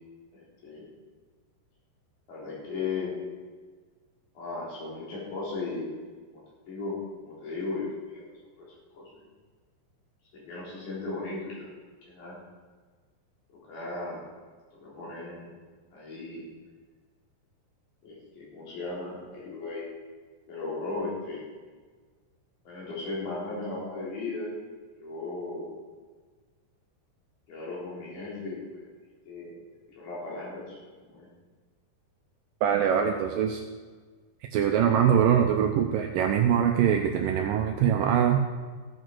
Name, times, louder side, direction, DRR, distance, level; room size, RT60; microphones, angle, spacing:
voice 1, 0.3-0.8 2.3-3.1 4.3-5.8 6.7-7.0 7.2-8.2 8.6-8.7 8.9-9.2 10.3-11.7 12.1-12.4 13.7-14.2 14.7-15.5 15.9-16.5 18.0-19.8 20.5-21.4 22.6-24.5 25.0-25.7 27.5-28.8 29.3-29.5 29.9-30.8 31.0-31.3, left 3 dB, 50° left, -6 dB, 4.9 m, -36 dB
voice 2, 32.6-33.6 34.5-38.4, right 8 dB, 85° right, 4 dB, 2.0 m, -23 dB
15.0 x 9.0 x 4.6 m, 1.4 s
omnidirectional pair, 4.7 m